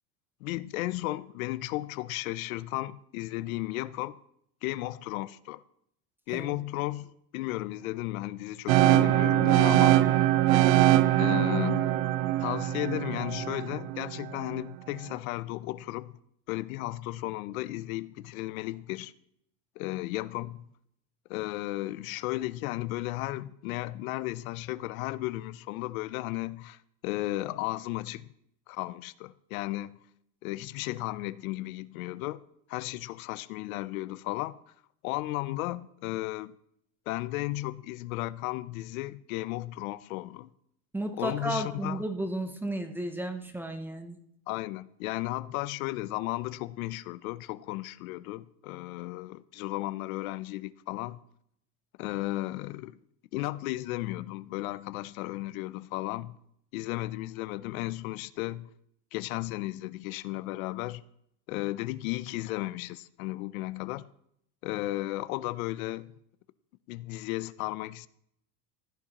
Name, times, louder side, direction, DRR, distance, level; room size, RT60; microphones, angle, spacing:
voice 1, 0.4-4.2 4.6-5.6 6.3-10.0 11.2-11.9 12.4-16.1 16.5-19.1 19.8-20.7 21.3-28.3 28.7-29.9 30.4-32.4 32.7-34.6 35.0-36.5 37.1-40.5 41.1-42.0 44.5-51.2 52.0-53.0 53.3-56.4 56.7-58.7 59.1-61.0 61.5-64.1 64.6-66.1 66.9-68.1, left 18 dB, 85° left, 0.6 m, -34 dB
sound 1, 8.7-14.6, right 14 dB, 85° right, 0.7 m, -23 dB
voice 2, 40.9-44.2, right 1 dB, 5° right, 0.5 m, -33 dB
15.0 x 9.8 x 2.9 m
supercardioid pair, 150°, 41 cm